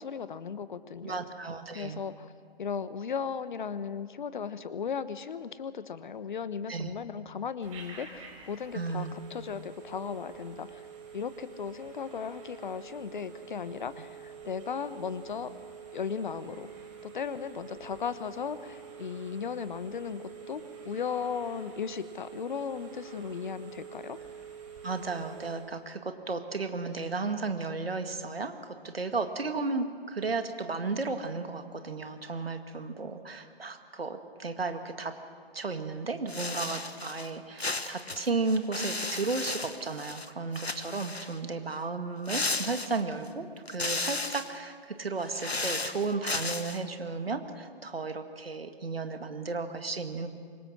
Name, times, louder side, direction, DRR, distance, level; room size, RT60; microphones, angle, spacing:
voice 1, 0.0-1.2 1.7-2.3 2.6-10.9 11.1-15.5 15.9-16.7 17.0-24.2, left 6 dB, 50° left, 14 dB, 1.1 m, -36 dB
voice 2, 1.0-2.0 6.7-6.9 8.7-9.1 24.8-35.2 35.5-50.3, right 3 dB, 70° right, 7 dB, 2.0 m, -34 dB
Telephone, 7.6-25.7, right 7 dB, 30° right, 4.5 m, -47 dB
sound 1, 36.3-37.3 37.6-40.3 40.5-41.4 42.3-43.3 43.7-44.6 45.2-46.8, left 3 dB, 85° left, 1.3 m, -34 dB
25.5 x 22.0 x 6.3 m, 2.1 s
figure-of-eight pair, 130°, 31 cm